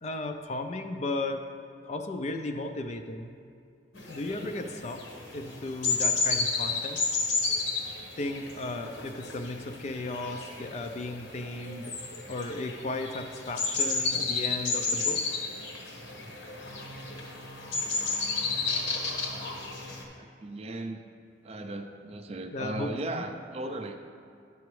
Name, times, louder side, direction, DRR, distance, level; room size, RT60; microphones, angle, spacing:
voice 1, 0.0-1.4 1.8-3.3 4.1-5.0 5.3-7.0 8.2-12.0 12.3-15.4 22.5-23.2, left 2 dB, 35° left, 6 dB, 0.4 m, -35 dB
sound 1, 3.9-20.0, left 4 dB, 80° left, 1.2 m, -32 dB
voice 2, 20.2-21.0 21.4-24.0, right 2 dB, 30° right, 6 dB, 0.4 m, -37 dB
10.5 x 6.9 x 3.2 m, 2.4 s
head